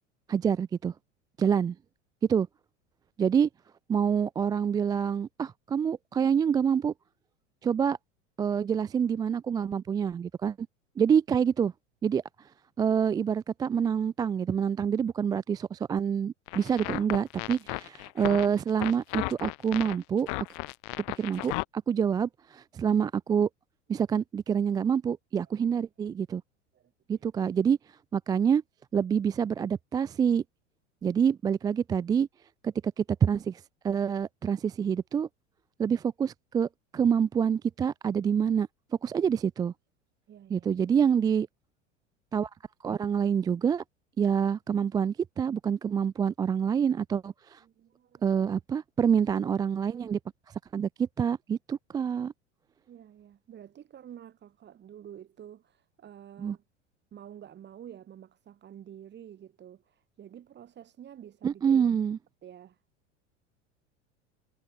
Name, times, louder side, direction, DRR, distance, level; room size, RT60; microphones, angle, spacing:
voice 1, 0.3-0.9 1.4-1.8 2.3-2.5 3.2-3.5 3.9-6.9 7.6-8.0 8.4-10.7 11.0-11.7 12.0-12.5 12.8-20.3 21.2-23.5 23.9-26.4 27.1-27.8 28.1-28.6 28.9-30.4 31.0-32.3 32.6-35.3 35.8-38.7 39.0-39.7 40.5-41.5 42.3-42.5 42.8-43.8 44.2-47.6 48.2-50.2 50.5-52.3 56.4-56.6 61.4-62.2, right 7 dB, 10° right, 0.3 m, -27 dB
sound 1, 16.5-21.6, left 40 dB or more, 45° left, 1.0 m, -34 dB
voice 2, 26.7-27.3 40.3-40.7 47.6-48.3 52.9-56.6 57.1-61.9 62.4-62.8, right 10 dB, 30° right, 2.1 m, -49 dB
figure-of-eight pair, 80°, 37 cm